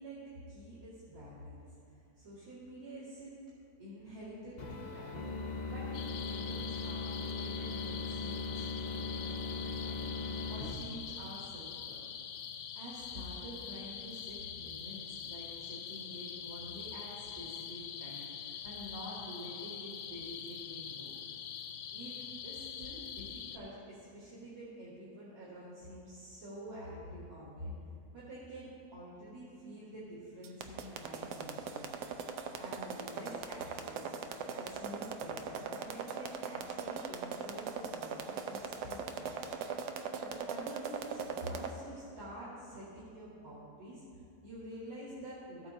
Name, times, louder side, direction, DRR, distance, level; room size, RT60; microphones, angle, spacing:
voice 1, 0.0-1.6 1.9-3.5 3.8-5.2 5.7-10.2 10.5-12.0 12.7-21.1 21.9-22.2 22.4-27.7 28.1-32.1 32.6-34.1 34.5-39.7 40.2-45.7, equal, 60° right, -13 dB, 2.7 m, -48 dB
sound 1, 4.6-10.7, left 3 dB, 55° left, 0.5 m, -39 dB
sound 2, 5.9-23.6, left 8 dB, 70° left, 1.0 m, -44 dB
sound 3, 30.4-41.7, right 6 dB, 85° right, 1.2 m, -39 dB
15.0 x 8.5 x 2.8 m, 2.4 s
omnidirectional pair, 1.7 m